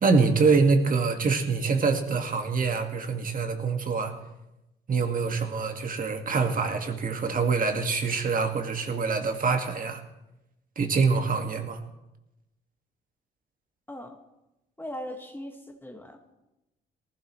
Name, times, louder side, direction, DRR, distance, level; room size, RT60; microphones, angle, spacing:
voice 1, 0.0-4.1 4.9-10.0 10.8-11.8, right 4 dB, 45° right, 5 dB, 1.9 m, -25 dB
voice 2, 14.8-16.3, equal, 10° left, 3 dB, 1.7 m, -39 dB
19.5 x 15.0 x 3.2 m, 0.95 s
cardioid pair, 90°, 20 cm